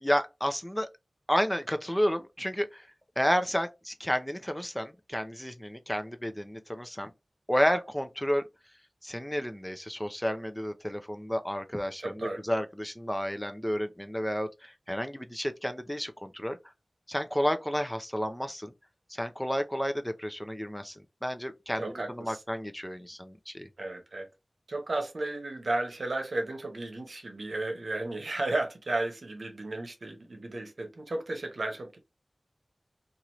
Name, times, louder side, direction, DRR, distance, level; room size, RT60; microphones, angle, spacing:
voice 1, 0.0-0.9 1.3-2.8 3.2-7.1 7.5-8.4 9.0-16.6 17.1-18.7 19.1-23.7, equal, 10° left, 0.5 m, -31 dB
voice 2, 12.0-12.4 21.8-22.4 23.8-24.3 24.7-32.0, right 2 dB, 85° right, 0.8 m, -34 dB
2.8 x 2.5 x 2.9 m
wide cardioid pair, 45°, 0 cm